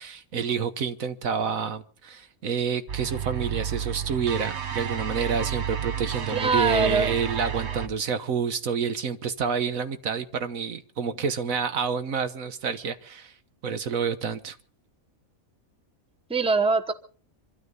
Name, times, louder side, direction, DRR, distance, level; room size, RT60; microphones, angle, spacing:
voice 1, 0.0-13.4 13.6-14.6, right 6 dB, 75° right, 10 dB, 1.6 m, -28 dB
sound 1, 2.9-7.9, right 8 dB, 55° right, 1.4 m, -31 dB
voice 2, 6.3-7.2 16.3-16.9, right 4 dB, 5° right, 7 dB, 1.0 m, -23 dB
26.0 x 13.0 x 4.0 m, 0.40 s
omnidirectional pair, 1.5 m